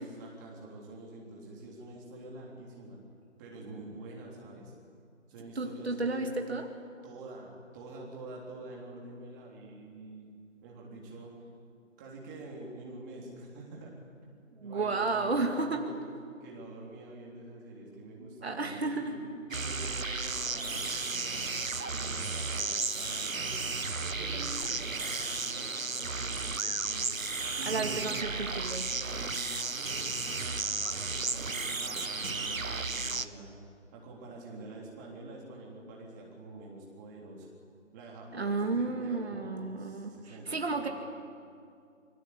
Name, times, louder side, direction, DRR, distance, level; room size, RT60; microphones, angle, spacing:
voice 1, 0.0-3.0 3.4-4.7 5.3-6.3 7.0-10.3 10.6-11.4 12.0-14.3 14.6-16.0 16.4-23.6 24.0-27.0 27.6-28.4 28.9-33.5 33.9-37.5 37.9-40.9, right 2 dB, 15° right, -2 dB, 3.4 m, -46 dB
voice 2, 5.6-6.7 14.6-15.9 18.4-19.2 27.7-28.9 38.3-40.9, right 3 dB, 50° right, 4 dB, 2.5 m, -32 dB
sound 1, 19.5-33.3, right 4 dB, 90° right, 1.4 m, -34 dB
26.5 x 24.0 x 8.4 m, 2.3 s
figure-of-eight pair, 160°, 39 cm